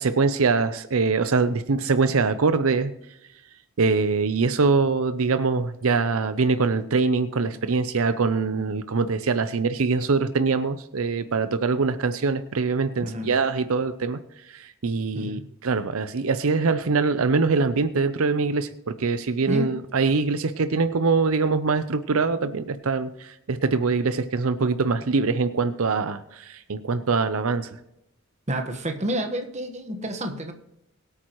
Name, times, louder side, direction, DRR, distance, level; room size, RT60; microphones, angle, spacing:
voice 1, 0.0-2.9 3.8-14.2 14.5-27.7, right 4 dB, 75° right, 11 dB, 0.6 m, -23 dB
voice 2, 19.5-19.8 28.5-30.5, equal, 30° right, 5 dB, 1.3 m, -29 dB
22.5 x 8.6 x 3.1 m, 0.86 s
head